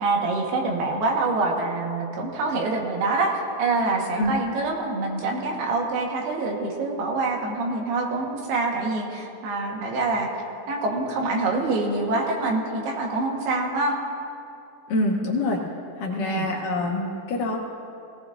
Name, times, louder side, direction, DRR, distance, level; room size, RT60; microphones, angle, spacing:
voice 1, 0.0-10.3 10.7-14.0 16.2-16.5, right 3 dB, 80° right, 0 dB, 3.4 m, -25 dB
voice 2, 14.9-15.6 16.0-17.6, left 2 dB, 70° left, -1 dB, 2.3 m, -25 dB
17.5 x 17.0 x 2.6 m, 2.7 s
omnidirectional pair, 4.5 m